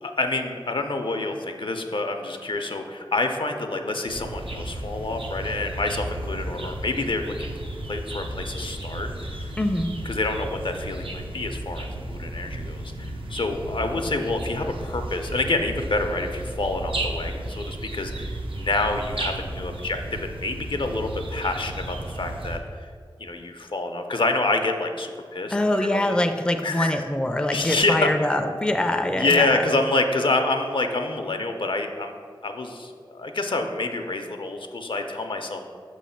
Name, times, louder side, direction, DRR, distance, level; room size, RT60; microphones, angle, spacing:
voice 1, 0.0-7.5 7.8-9.5 10.0-22.9 23.2-26.2 26.6-27.0 27.5-28.1 29.1-32.1 32.4-35.6, left 2 dB, 65° left, 5 dB, 0.5 m, -27 dB
sound 1, 4.1-22.6, right 1 dB, 75° right, 0.6 m, -34 dB
voice 2, 9.6-9.9 25.5-29.7, left 1 dB, 10° left, 6 dB, 0.4 m, -24 dB
6.5 x 3.1 x 5.6 m, 2.1 s
wide cardioid pair, 50°, 9 cm